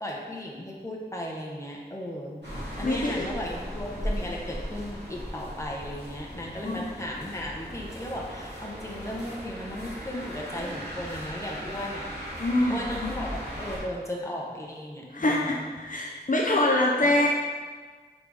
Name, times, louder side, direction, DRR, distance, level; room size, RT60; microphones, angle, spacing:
voice 1, 0.0-2.4 2.8-12.0 12.7-15.7 17.0-17.3, left 1 dB, 15° left, -3 dB, 1.1 m, -36 dB
sound 1, 2.4-13.8, equal, 75° right, 1.8 m, -37 dB
voice 2, 2.8-3.3 6.6-6.8 12.4-13.1 15.1-17.3, left 1 dB, 50° left, -3 dB, 0.6 m, -25 dB
5.1 x 3.9 x 4.8 m, 1.5 s
wide cardioid pair, 50°, 18 cm